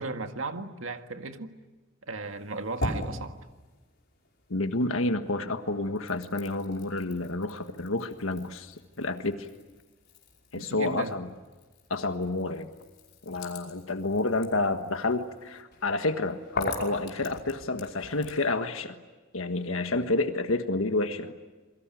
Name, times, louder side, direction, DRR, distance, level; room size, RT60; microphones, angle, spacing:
voice 1, 0.0-1.5 2.1-3.4 10.6-11.2, right 3 dB, 75° right, 6 dB, 1.9 m, -35 dB
sound 1, 2.2-4.9 5.2-18.5, left 2 dB, 55° left, 5.4 m, -41 dB
voice 2, 4.5-9.5 10.5-11.3 11.9-12.7 13.2-19.0 19.3-21.3, left 2 dB, 80° left, 7 dB, 1.5 m, -29 dB
28.0 x 23.0 x 9.2 m, 1.2 s
head